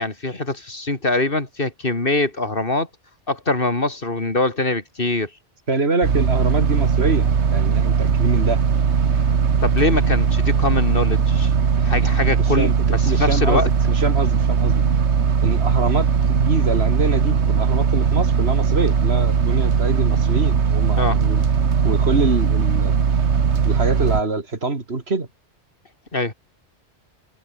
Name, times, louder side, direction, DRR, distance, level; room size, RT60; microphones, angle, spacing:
voice 1, 0.0-2.9 3.3-5.3 7.0-7.1 9.1-9.3 9.6-11.5 11.8-13.7 21.0-21.2 26.1-26.3, left 2 dB, 55° left, 3.3 m, -23 dB
voice 2, 5.7-8.6 12.6-14.8 15.4-21.4 21.8-22.9 23.6-25.3, right 3 dB, 70° right, 3.0 m, -24 dB
sound 1, 6.0-24.2, right 6 dB, 85° right, 1.7 m, -19 dB
omnidirectional pair, 1.1 m